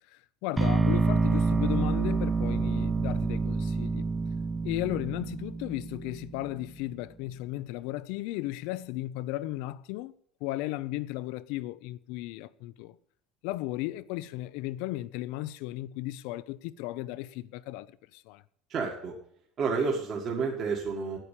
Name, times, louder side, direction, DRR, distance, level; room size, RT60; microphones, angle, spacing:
voice 1, 0.1-4.1 4.6-10.1 10.4-13.0 13.4-18.4, left 16 dB, 80° left, 0.6 m, -35 dB
sound 1, 0.6-6.6, right 4 dB, 15° right, 0.4 m, -28 dB
voice 2, 18.7-19.1 19.6-21.2, right 5 dB, 40° right, 1.8 m, -30 dB
9.2 x 8.9 x 8.3 m
cardioid pair, 155°, 0 cm